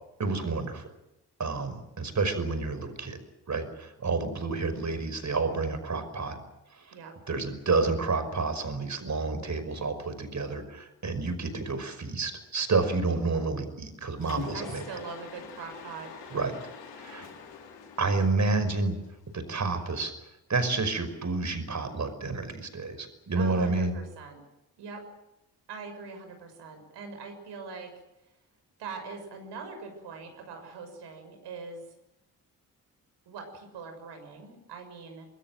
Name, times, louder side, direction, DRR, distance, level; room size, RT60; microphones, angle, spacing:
voice 1, 0.2-0.9 1.4-3.2 3.5-6.4 7.3-14.8 16.3-16.5 16.9-17.3 18.0-19.0 19.3-20.1 20.5-23.9, right 3 dB, 40° right, 11 dB, 5.5 m, -29 dB
voice 2, 13.1-13.6 14.5-16.2 23.3-24.4 24.8-25.1 25.7-27.9 28.8-31.9 33.3-35.3, right 4 dB, 65° right, 5 dB, 6.5 m, -42 dB
Mechanisms, 14.2-19.3, left 6 dB, 70° left, 6.0 m, -45 dB
26.0 x 22.5 x 7.7 m, 0.91 s
hypercardioid pair, 40°, 45 cm